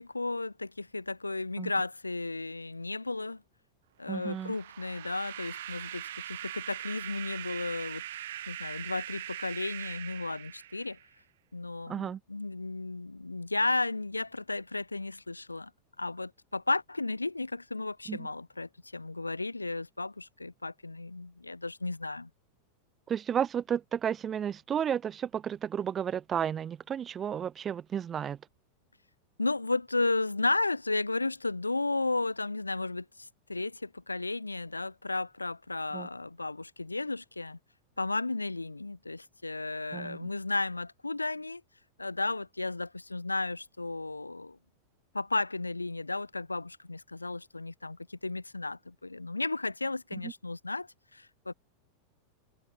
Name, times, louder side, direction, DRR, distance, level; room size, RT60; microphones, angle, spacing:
voice 1, 0.0-3.4 4.0-8.0 8.5-11.0 11.5-15.7 16.0-22.3 29.4-37.6 38.0-41.6 42.0-44.6 45.1-51.5, left 3 dB, 80° left, 0.6 m, -34 dB
voice 2, 4.1-4.5 11.9-12.2 18.1-18.2 23.1-28.4 35.9-36.1 39.9-40.3, right 8 dB, 25° right, 0.8 m, -32 dB
sound 1, 4.1-11.1, right 12 dB, 60° right, 0.5 m, -41 dB
figure-of-eight pair, 90°, 0 cm